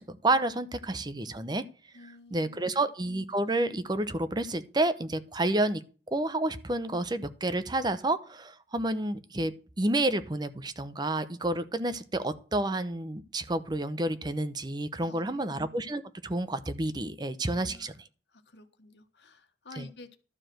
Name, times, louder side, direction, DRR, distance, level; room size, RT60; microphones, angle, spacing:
voice 1, 0.0-1.6 2.3-5.8 6.1-17.9 19.8-19.9, right 2 dB, 25° right, 12 dB, 0.8 m, -30 dB
voice 2, 1.9-2.9 15.0-15.5 17.5-17.9 18.3-20.2, left 2 dB, 75° left, 8 dB, 1.5 m, -51 dB
12.0 x 4.9 x 7.7 m, 0.36 s
head